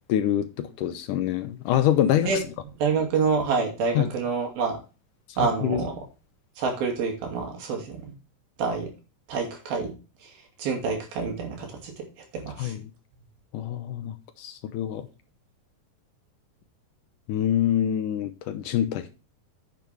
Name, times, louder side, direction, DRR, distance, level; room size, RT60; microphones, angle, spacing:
voice 1, 0.1-2.3 4.0-4.1 5.4-5.8 12.6-12.8 13.5-15.1 17.3-19.1, left 11 dB, 75° left, 2.2 m, -25 dB
voice 2, 2.8-4.8 5.4-5.9 6.6-8.1 8.6-8.9 9.3-9.9 10.2-10.3 10.6-11.9 12.3-12.7, right 5 dB, 80° right, 4.3 m, -27 dB
9.6 x 7.8 x 3.4 m
omnidirectional pair, 4.1 m